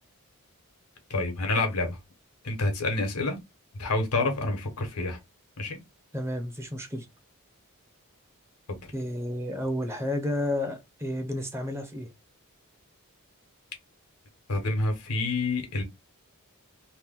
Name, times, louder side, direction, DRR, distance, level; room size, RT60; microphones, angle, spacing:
voice 1, 1.1-2.0 2.4-3.4 3.8-5.2 5.6-5.8 8.7-8.8 14.5-15.8, left 2 dB, 85° left, 1.0 m, -28 dB
voice 2, 6.1-7.1 8.9-12.1, left 1 dB, 10° right, 0.6 m, -31 dB
2.9 x 2.2 x 3.5 m
head